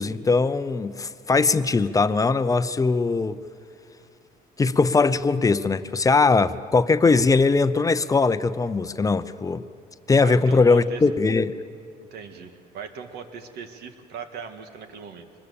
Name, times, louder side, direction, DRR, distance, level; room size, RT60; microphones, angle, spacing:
voice 1, 0.0-3.4 4.6-9.6 10.1-11.5, left 4 dB, 20° left, 0.6 m, -20 dB
voice 2, 10.2-11.0 12.0-15.3, right 6 dB, 75° right, 1.9 m, -39 dB
25.0 x 21.0 x 7.1 m
cardioid pair, 110°, 17 cm